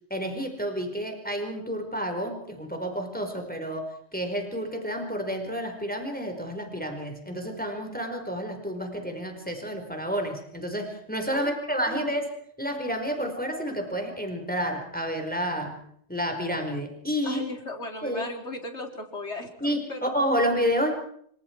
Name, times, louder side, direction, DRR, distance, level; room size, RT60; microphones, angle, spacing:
voice 1, 0.1-12.3 12.6-15.8 16.1-17.4 18.0-18.3 19.6-21.0, equal, 5° left, 4 dB, 4.9 m, -30 dB
voice 2, 11.9-12.2 17.2-20.1, left 2 dB, 75° left, 3 dB, 4.5 m, -37 dB
28.0 x 26.5 x 4.8 m, 0.65 s
omnidirectional pair, 1.2 m